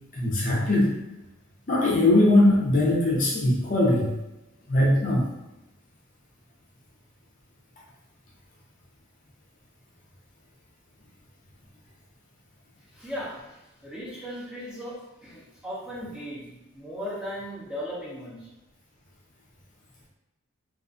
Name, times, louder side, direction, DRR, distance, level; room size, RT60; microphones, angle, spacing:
voice 1, 0.1-1.0 1.7-4.1 4.7-5.3, left 1 dB, 40° left, -4 dB, 0.5 m, -21 dB
voice 2, 12.9-18.5, equal, 5° right, -7 dB, 0.6 m, -37 dB
2.4 x 2.3 x 2.4 m, 0.97 s
head